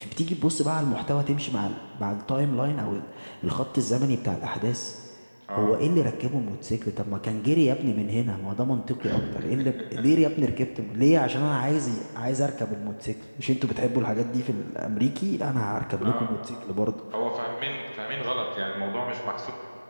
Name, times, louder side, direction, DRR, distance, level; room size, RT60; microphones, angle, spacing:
voice 1, 0.0-17.3, equal, 90° right, 7 dB, 0.6 m, -26 dB
voice 2, 17.1-19.5, equal, 60° right, 1 dB, 2.2 m, -30 dB
26.0 x 11.0 x 4.4 m, 2.6 s
figure-of-eight pair, 175°, 0 cm